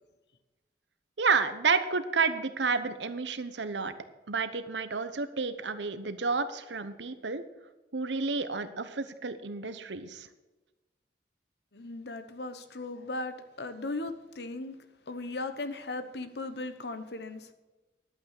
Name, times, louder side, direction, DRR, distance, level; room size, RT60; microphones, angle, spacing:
voice 1, 1.2-3.9 4.3-7.4 7.9-10.3, right 4 dB, 85° right, 11 dB, 1.0 m, -30 dB
voice 2, 11.7-14.8 15.1-17.5, left 2 dB, 70° left, 10 dB, 1.0 m, -37 dB
11.5 x 8.4 x 6.6 m, 1.1 s
head